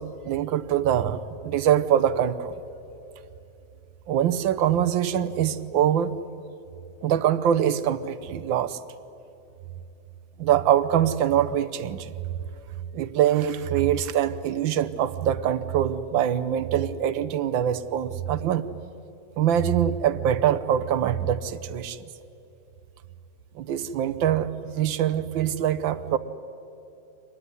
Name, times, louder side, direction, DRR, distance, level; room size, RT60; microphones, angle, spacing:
voice 1, 0.0-2.5 4.1-6.1 7.0-8.8 10.4-12.1 12.9-18.6 19.4-22.0 23.5-26.2, right 10 dB, 75° right, 12 dB, 1.6 m, -24 dB
25.5 x 20.5 x 9.8 m, 2.8 s
omnidirectional pair, 2.2 m